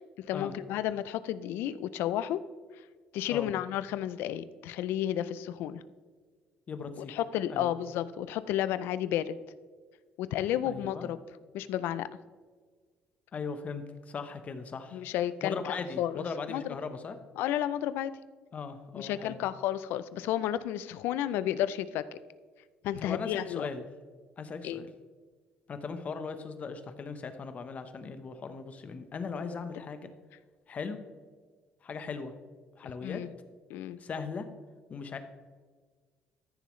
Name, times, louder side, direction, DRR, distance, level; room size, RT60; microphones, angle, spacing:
voice 1, 0.0-2.4 3.1-5.8 7.0-9.4 10.2-11.2 11.5-12.1 14.9-16.6 17.4-18.1 18.9-22.1 22.8-23.7 24.6-24.8 33.0-33.3 33.7-34.0, left 12 dB, 80° left, 15 dB, 0.5 m, -32 dB
voice 2, 6.7-7.1 7.5-7.7 10.6-11.1 13.3-15.0 15.4-17.1 18.5-19.4 23.0-23.8 24.4-24.9 25.7-30.1 30.7-31.0 31.8-32.3 32.8-33.2 34.0-34.5 34.9-35.2, left 5 dB, 40° left, 9 dB, 1.0 m, -38 dB
13.5 x 6.9 x 3.2 m, 1.5 s
cardioid pair, 110°, 4 cm